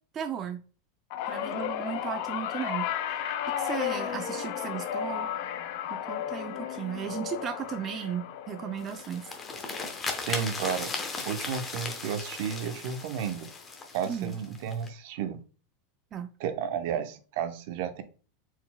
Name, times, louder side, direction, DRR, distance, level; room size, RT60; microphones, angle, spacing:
voice 1, 0.1-0.6 1.3-2.9 3.4-5.3 5.9-9.3 14.1-14.3 16.1-16.3, right 8 dB, 30° right, 7 dB, 0.4 m, -35 dB
sound 1, 1.1-11.5 11.9-12.3 13.4-13.5, left 10 dB, 60° left, 0.6 m, -34 dB
sound 2, 8.8-14.9, left 4 dB, 20° left, 0.9 m, -37 dB
voice 2, 10.3-10.9 11.3-13.5 13.9-15.4 16.4-18.0, right 7 dB, 65° right, 9 dB, 0.7 m, -32 dB
4.5 x 3.8 x 2.2 m, 0.37 s
supercardioid pair, 135°, 0 cm